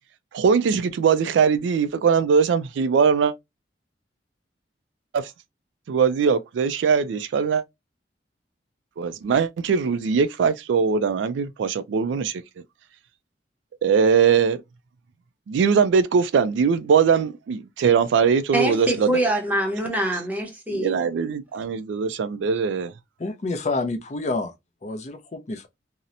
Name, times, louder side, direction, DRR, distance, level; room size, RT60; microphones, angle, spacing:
voice 1, 0.3-3.3 5.1-5.3 5.9-7.6 9.0-12.4 13.8-14.6 15.5-19.1 20.7-22.9, right 6 dB, 90° right, 0.3 m, -21 dB
voice 2, 18.5-21.0, right 1 dB, 10° right, 0.7 m, -24 dB
voice 3, 23.2-24.5 24.8-25.7, left 3 dB, 40° left, 0.4 m, -28 dB
2.7 x 2.0 x 2.4 m
head